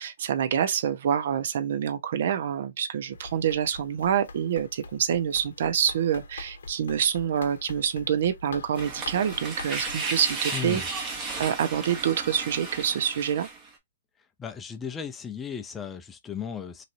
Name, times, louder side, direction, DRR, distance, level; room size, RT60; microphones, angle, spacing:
voice 1, 0.0-11.1 11.4-13.5, right 8 dB, 60° right, 0.8 m, -26 dB
Run, 3.1-10.0, left 3 dB, 80° left, 0.8 m, -44 dB
sound 1, 8.8-13.7, right 4 dB, 25° right, 1.1 m, -34 dB
voice 2, 10.5-10.8 14.4-16.8, left 7 dB, 15° left, 0.4 m, -35 dB
3.2 x 2.6 x 2.6 m
hypercardioid pair, 145°, 0 cm